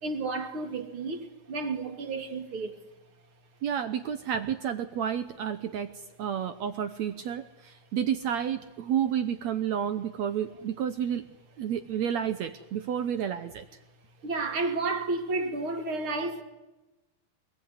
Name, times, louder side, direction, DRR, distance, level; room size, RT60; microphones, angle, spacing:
voice 1, 0.0-2.8 14.2-16.4, right 3 dB, 40° right, 2.8 m, -31 dB
voice 2, 3.6-5.9 6.2-11.2 11.6-13.7, right 9 dB, 75° right, 1.6 m, -30 dB
25.0 x 21.0 x 9.7 m
omnidirectional pair, 4.4 m